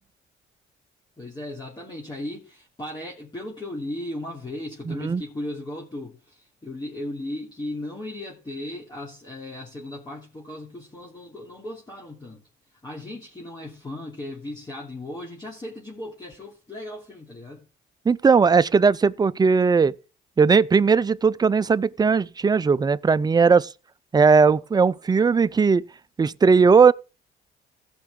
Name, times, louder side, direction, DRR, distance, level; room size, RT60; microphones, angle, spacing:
voice 1, 1.2-12.4 12.8-17.7, left 1 dB, 20° left, 3.0 m, -36 dB
voice 2, 4.9-5.2 18.1-19.9 20.4-23.7 24.1-25.8 26.2-26.9, right 5 dB, 20° right, 0.4 m, -18 dB
16.5 x 5.9 x 3.7 m
cardioid pair, 90°, 20 cm